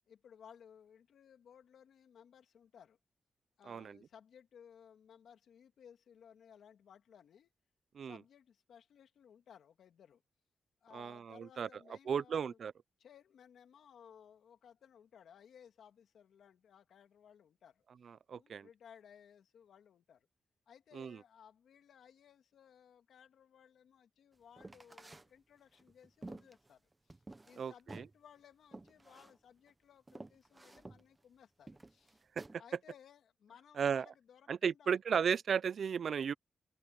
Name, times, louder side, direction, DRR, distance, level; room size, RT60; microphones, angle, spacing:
voice 1, 0.1-3.0 3.6-7.5 8.0-10.2 10.8-12.6 13.0-17.8 18.3-20.3 20.7-32.2 32.6-35.0, left 8 dB, 85° left, 2.6 m, -60 dB
voice 2, 3.7-4.0 7.9-8.2 10.9-11.7 12.1-12.7 18.1-18.7 21.0-21.2 27.6-28.0 33.8-34.1 34.5-36.3, right 7 dB, 60° right, 0.5 m, -35 dB
sound 1, 24.6-25.3 25.7-27.6 27.9-28.1 28.7-29.3 29.7-29.8 30.1-31.0 31.7-32.5, right 2 dB, 20° right, 1.0 m, -51 dB
wide cardioid pair, 130°, 0 cm